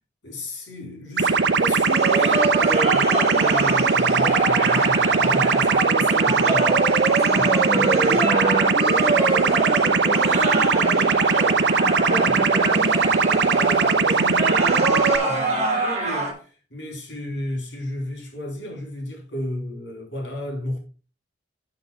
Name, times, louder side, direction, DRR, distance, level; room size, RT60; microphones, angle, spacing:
voice 1, 0.2-6.8 7.1-7.4 7.7-8.2 12.1-12.4 13.5-20.8, left 1 dB, 85° left, 3.9 m, -33 dB
sound 1, 1.2-15.2, right 5 dB, 80° right, 0.7 m, -20 dB
sound 2, 1.8-16.3, right 3 dB, 40° right, 2.7 m, -25 dB
voice 2, 7.2-8.8 9.1-11.2 11.8-12.9, right 2 dB, 10° right, 1.2 m, -30 dB
6.9 x 6.1 x 5.1 m
head